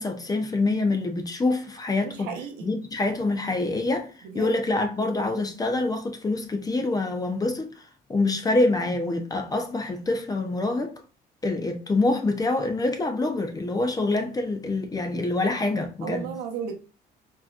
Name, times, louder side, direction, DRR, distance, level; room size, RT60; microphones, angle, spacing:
voice 1, 0.0-2.4 2.6-11.0 11.4-16.3, left 2 dB, 20° left, 0.8 m, -26 dB
voice 2, 2.3-2.7 4.3-4.5 16.0-16.7, right 7 dB, 90° right, 1.1 m, -33 dB
4.7 x 2.9 x 2.4 m
cardioid pair, 110°, 17 cm